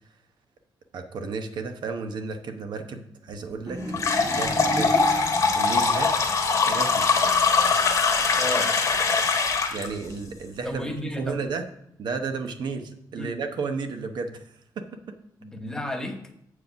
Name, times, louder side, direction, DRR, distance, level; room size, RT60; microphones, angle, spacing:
voice 1, 0.9-3.8 4.2-4.9 5.5-6.3 6.7-7.1 9.7-11.7 12.0-14.4 14.8-15.0, right 4 dB, 65° right, 6 dB, 0.9 m, -33 dB
sound 1, 3.7-5.7, right 1 dB, 35° right, 1.4 m, -33 dB
sound 2, 3.9-9.9, left 4 dB, 40° left, 1.3 m, -22 dB
voice 2, 8.4-8.8 10.6-11.4 13.2-13.4 15.4-16.3, left 1 dB, 5° left, 4 dB, 1.0 m, -33 dB
7.8 x 4.9 x 6.8 m, 0.74 s
wide cardioid pair, 145°, 8 cm